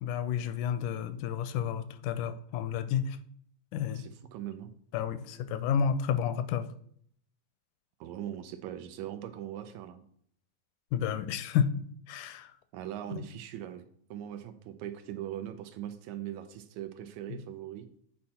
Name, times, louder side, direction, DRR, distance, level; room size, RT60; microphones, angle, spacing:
voice 1, 0.0-3.2 3.7-4.0 4.9-6.7 10.9-11.8 12.1-12.5 13.1-13.2, left 8 dB, 85° left, 12 dB, 2.1 m, -31 dB
voice 2, 3.9-4.7 8.0-10.0 12.7-13.8 14.1-17.9, right 11 dB, 80° right, 9 dB, 1.9 m, -40 dB
8.6 x 4.4 x 4.2 m, 0.64 s
omnidirectional pair, 3.5 m